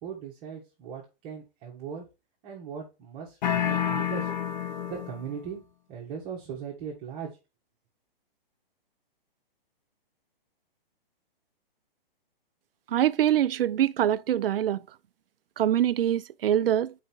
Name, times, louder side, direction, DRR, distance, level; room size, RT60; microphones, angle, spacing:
voice 1, 0.0-2.1 2.4-4.3 4.9-5.6 5.9-7.3, right 7 dB, 25° right, 1.7 m, -39 dB
sound 1, 3.4-5.4, left 9 dB, 45° left, 0.8 m, -29 dB
voice 2, 12.9-14.8 15.6-16.9, right 11 dB, 70° right, 0.5 m, -24 dB
6.3 x 4.9 x 4.5 m
hypercardioid pair, 155°, 30 cm